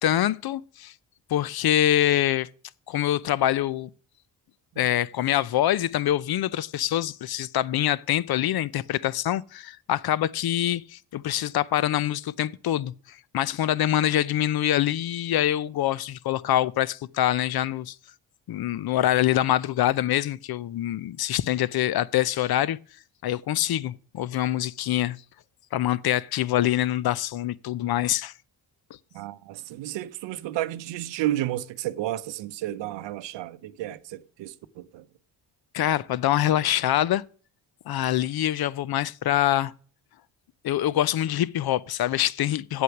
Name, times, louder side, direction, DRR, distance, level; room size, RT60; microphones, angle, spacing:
voice 1, 0.0-0.9 1.3-2.5 2.9-3.9 4.8-18.0 18.5-22.8 23.2-25.2 25.7-28.3 35.7-37.2 37.9-39.7 40.6-42.8, left 12 dB, 60° left, 0.6 m, -25 dB
voice 2, 29.1-35.0, right 14 dB, 90° right, 0.8 m, -32 dB
8.3 x 8.0 x 5.9 m
cardioid pair, 75°, 43 cm